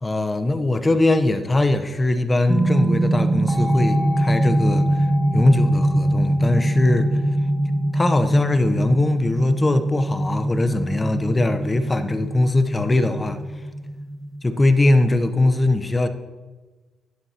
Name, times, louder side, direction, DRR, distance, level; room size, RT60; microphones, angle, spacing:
voice 1, 0.0-5.1 5.3-7.2 7.9-13.4 14.6-16.1, left 2 dB, 20° left, 9 dB, 0.8 m, -21 dB
sound 1, 2.5-15.1, right 1 dB, 10° right, 1.1 m, -22 dB
11.5 x 11.0 x 2.9 m, 1.3 s
cardioid pair, 90°, 0 cm